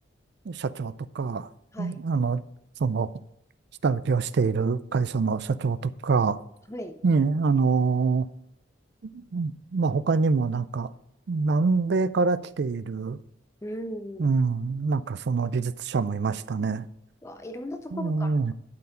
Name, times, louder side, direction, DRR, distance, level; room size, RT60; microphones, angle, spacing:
voice 1, 0.5-1.5 1.8-2.4 2.8-3.1 3.8-6.4 7.0-8.3 9.1-10.9 11.3-13.2 14.2-16.8 17.9-18.5, right 4 dB, 55° right, 0.4 m, -25 dB
voice 2, 6.7-7.0 13.6-14.3 17.2-18.5, equal, 15° left, 0.5 m, -37 dB
11.5 x 4.7 x 5.1 m
head